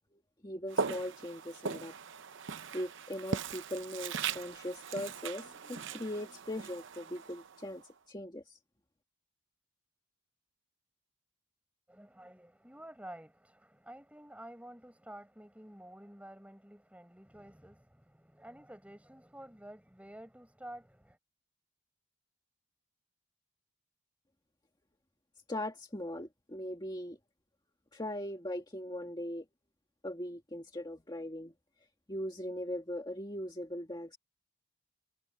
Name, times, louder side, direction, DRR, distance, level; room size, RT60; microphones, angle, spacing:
voice 1, 0.4-1.9 2.7-7.8 8.1-8.6 25.5-27.2 27.9-29.4 30.0-31.5 32.1-34.2, left 1 dB, 20° left, 1.9 m, -40 dB
Walk footsteps, 0.7-7.8, right 5 dB, 60° right, 0.8 m, -39 dB
voice 2, 11.9-21.2, right 1 dB, 5° right, 5.4 m, -51 dB
head